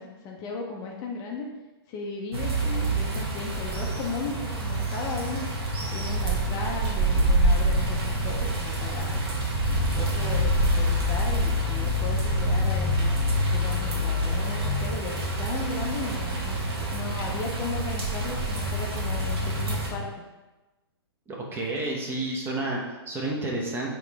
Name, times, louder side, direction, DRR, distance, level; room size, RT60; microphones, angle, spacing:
voice 1, 0.0-1.5 1.9-5.4 5.9-9.2 9.7-13.2 13.4-16.6 16.9-20.1, left 4 dB, 25° left, 0 dB, 0.5 m, -36 dB
sound 1, 2.3-19.9, equal, 65° right, 1.2 m, -26 dB
voice 2, 21.3-23.9, right 2 dB, 15° right, -1 dB, 0.7 m, -30 dB
4.8 x 3.0 x 3.4 m, 1.1 s
hypercardioid pair, 135°, 14 cm